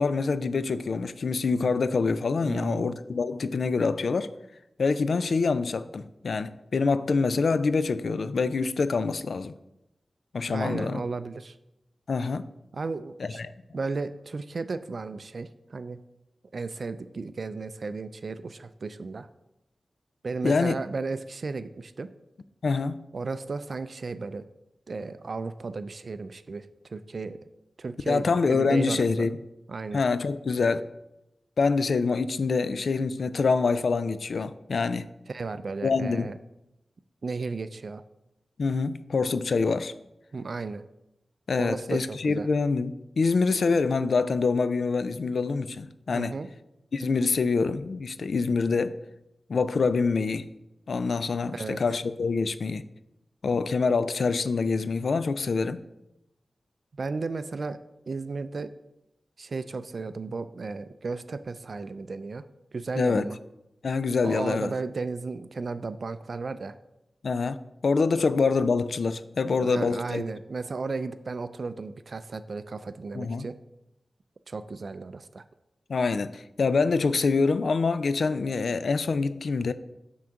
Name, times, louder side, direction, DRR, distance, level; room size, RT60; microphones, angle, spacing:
voice 1, 0.0-4.3 4.8-9.5 10.3-11.0 12.1-12.4 13.2-13.5 20.4-20.7 22.6-23.0 28.1-29.3 29.9-30.8 31.6-35.1 35.8-36.3 38.6-39.9 41.5-46.4 46.9-49.0 49.5-50.5 50.9-52.8 53.4-55.8 63.0-63.3 63.8-64.7 67.2-67.6 67.8-70.2 73.1-73.5 75.9-79.7, left 4 dB, 75° left, 0.3 m, -25 dB
voice 2, 2.4-3.0 10.5-11.6 12.7-13.4 13.7-16.0 16.5-19.3 20.2-22.1 23.1-24.5 24.9-27.4 27.8-29.3 29.7-30.1 35.3-36.4 37.2-38.0 40.3-40.8 41.6-42.5 46.1-46.5 51.5-51.8 57.0-57.8 58.1-58.7 59.4-62.4 62.7-63.4 64.2-66.7 68.1-68.2 69.6-73.6 74.5-75.4, right 4 dB, 65° right, 0.3 m, -34 dB
6.1 x 3.8 x 5.8 m
wide cardioid pair, 70°, 0 cm